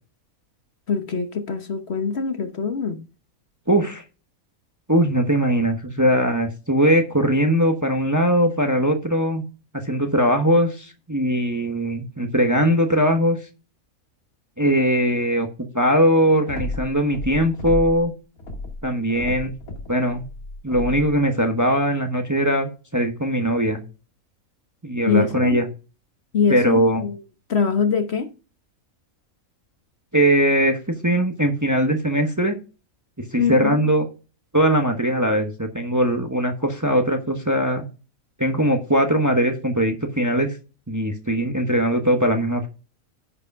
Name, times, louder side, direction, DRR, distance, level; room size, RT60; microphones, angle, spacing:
voice 1, 0.9-3.0 25.1-25.6 26.3-27.2 27.5-28.3 33.4-33.9, left 6 dB, 50° left, 1.3 m, -23 dB
voice 2, 3.7-4.0 4.9-9.4 9.7-13.4 14.6-15.5 15.7-18.1 18.8-19.5 19.9-20.2 20.6-23.8 24.8-25.7 26.5-27.0 30.1-32.6 33.3-34.1 34.5-37.8 38.4-40.6 40.9-42.7, equal, 15° right, 1.1 m, -20 dB
sound 1, 16.5-18.1 18.4-21.2, left 2 dB, 85° left, 2.5 m, -33 dB
10.0 x 5.0 x 5.4 m
omnidirectional pair, 1.5 m